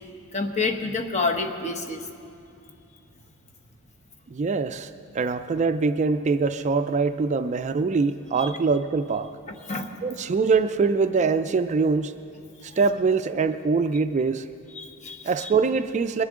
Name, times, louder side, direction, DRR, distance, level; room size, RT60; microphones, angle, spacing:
voice 1, 0.3-2.0 8.4-8.5 9.7-9.9 14.8-15.5, left 3 dB, 35° left, 4 dB, 1.0 m, -28 dB
voice 2, 4.3-9.3 10.0-12.1 12.6-14.5 15.2-16.2, right 4 dB, 35° right, 9 dB, 0.3 m, -23 dB
21.5 x 11.0 x 3.7 m, 2.6 s
head